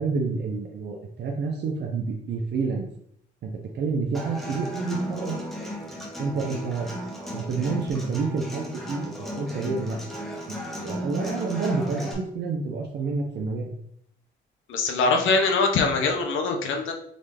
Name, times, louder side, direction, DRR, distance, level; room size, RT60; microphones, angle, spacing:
voice 1, 0.0-2.9 3.4-5.4 6.2-6.9 7.3-9.1 9.4-10.0 10.5-13.7, right 4 dB, 60° right, 0 dB, 0.7 m, -29 dB
Human voice / Acoustic guitar, 4.1-12.1, equal, ahead, 1.1 m, -35 dB
voice 2, 14.7-16.9, left 4 dB, 80° left, 3 dB, 0.8 m, -23 dB
3.9 x 3.2 x 3.4 m, 0.69 s
cardioid pair, 90°, 20 cm